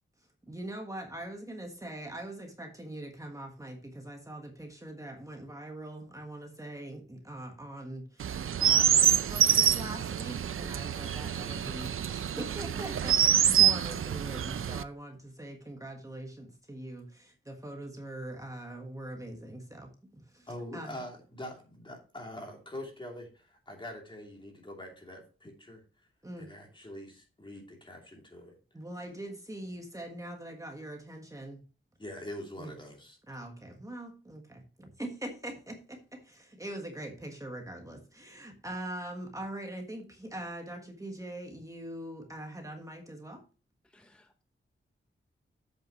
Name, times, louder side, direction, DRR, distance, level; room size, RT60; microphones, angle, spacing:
voice 1, 0.2-21.0 26.2-26.5 28.7-31.6 32.6-32.7 33.3-43.4, right 1 dB, 15° right, 1.5 m, -42 dB
Chirp tweet, 8.2-14.8, right 9 dB, 80° right, 0.5 m, -26 dB
voice 2, 20.5-25.8 26.4-28.5 32.0-33.2, left 1 dB, 25° left, 2.9 m, -44 dB
voice 3, 43.9-44.4, left 2 dB, 5° left, 0.7 m, -63 dB
8.6 x 8.0 x 3.0 m
wide cardioid pair, 135°, 21 cm